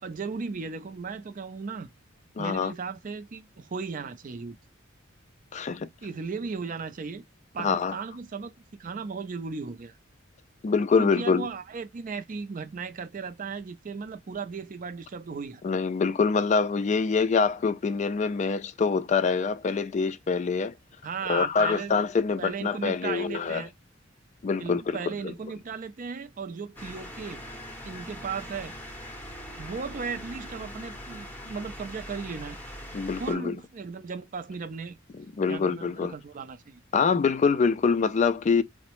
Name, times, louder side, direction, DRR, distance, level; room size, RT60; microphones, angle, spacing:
voice 1, 0.0-1.9 2.4-4.6 6.0-7.2 7.5-8.5 8.8-9.9 11.0-15.6 21.0-22.0 22.4-23.7 24.6-27.4 27.8-28.7 29.6-32.6 33.2-35.0 35.5-36.8, right 5 dB, 40° right, 0.4 m, -36 dB
voice 2, 2.4-2.7 5.5-5.9 7.6-8.0 10.6-11.5 15.6-20.7 21.3-23.6 24.4-25.0 25.2-25.3 32.9-33.6 35.1-36.1 36.9-38.6, left 5 dB, 35° left, 0.3 m, -25 dB
sound 1, 26.8-33.4, equal, 10° left, 0.7 m, -42 dB
3.8 x 2.1 x 2.9 m
head